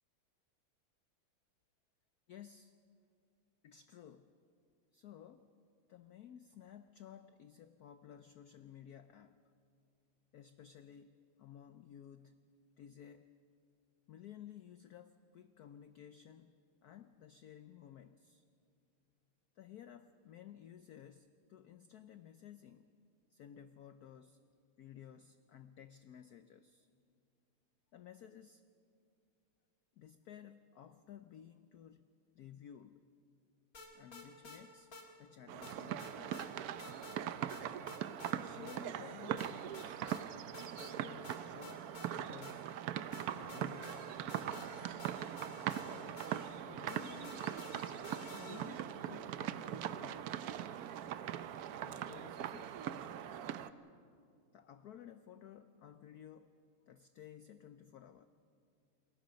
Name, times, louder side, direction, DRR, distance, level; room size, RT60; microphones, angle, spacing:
voice 1, 2.3-2.7 3.6-4.3 4.9-5.5 5.9-9.4 10.3-12.4 12.8-13.3 14.1-16.5 16.8-18.4 19.6-22.9 23.3-24.4 24.8-26.9 27.9-28.6 30.0-32.0 32.3-33.0 33.9-34.9 35.2-36.5 38.3-40.0 40.8-42.8 43.3-45.0 45.8-46.3 46.6-47.5 48.2-50.5 51.8-53.2 54.5-56.5 56.9-58.3, left 10 dB, 90° left, 10 dB, 0.8 m, -55 dB
sound 1, 33.7-34.6 34.9-35.1 35.6-36.5 36.8-37.2 37.5-38.4 38.7-38.8 39.4-40.2 40.5-40.9 41.2-42.8 43.1-48.9, left 2 dB, 40° left, 2.3 m, -52 dB
sound 2, 35.5-53.7, right 10 dB, 85° right, 0.8 m, -41 dB
29.0 x 21.5 x 5.2 m, 2.4 s
omnidirectional pair, 2.4 m